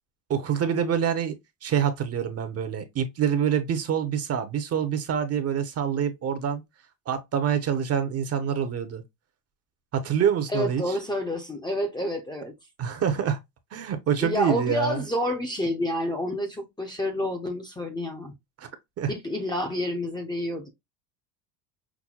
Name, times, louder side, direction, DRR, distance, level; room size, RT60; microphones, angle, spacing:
voice 1, 0.3-1.3 1.6-6.6 7.1-9.0 9.9-10.9 12.8-13.4 13.7-15.0 18.6-18.7 19.0-19.1, right 8 dB, 35° right, 0.8 m, -26 dB
voice 2, 10.5-12.5 14.2-18.3 19.1-20.7, left 1 dB, 10° left, 0.7 m, -29 dB
6.0 x 2.2 x 2.3 m
cardioid pair, 130°, 45 cm